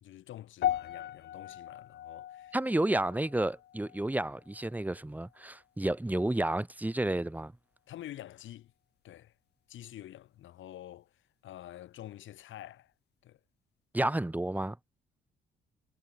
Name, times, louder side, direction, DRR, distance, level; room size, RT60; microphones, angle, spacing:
voice 1, 0.0-2.6 7.9-8.7 9.0-9.4 9.7-12.9 13.2-13.4, left 13 dB, 75° left, 2.1 m, -48 dB
sound 1, 0.6-5.0 5.3-5.7 6.3-6.4, left 11 dB, 55° left, 0.7 m, -38 dB
voice 2, 2.5-7.5 13.9-14.8, right 1 dB, 10° right, 1.4 m, -31 dB
cardioid pair, 90°, 20 cm